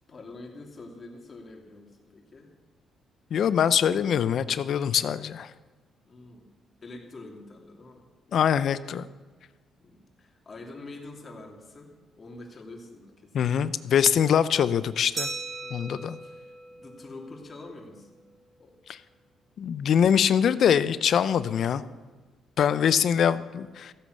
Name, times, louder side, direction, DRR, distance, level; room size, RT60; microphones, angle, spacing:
voice 1, 0.1-2.5 6.1-6.4 6.8-8.1 9.8-14.1 15.6-15.9 16.2-18.2 18.6-18.8, left 2 dB, 35° left, 1 dB, 2.8 m, -46 dB
voice 2, 3.3-5.5 8.3-9.1 13.3-15.3 15.7-16.2 18.9-19.0 19.6-21.8 22.6-23.9, left 8 dB, 65° left, 15 dB, 0.6 m, -23 dB
Glass, 15.2-17.6, right 3 dB, 40° right, 4.1 m, -38 dB
15.0 x 8.8 x 6.5 m, 1.3 s
cardioid pair, 90°, 0 cm